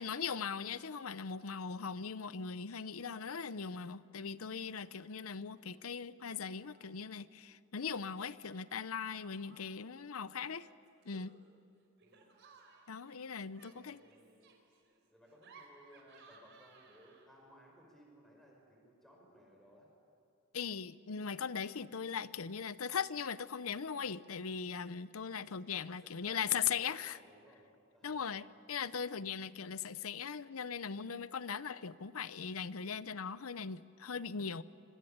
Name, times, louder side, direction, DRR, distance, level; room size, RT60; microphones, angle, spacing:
voice 1, 0.0-10.7 11.1-11.4 12.9-14.0 20.5-27.2 28.0-34.6, left 6 dB, 85° left, 0.7 m, -39 dB
Laughter, 4.5-4.9 5.2-5.8 6.2-7.1 8.4-9.9 10.5-17.5, right 4 dB, 60° right, 4.6 m, -63 dB
voice 2, 12.0-12.3 13.6-14.6 15.1-19.9 25.2-25.6 25.9-27.7 27.9-28.3, equal, ahead, 5.3 m, -61 dB
26.0 x 23.0 x 8.8 m
head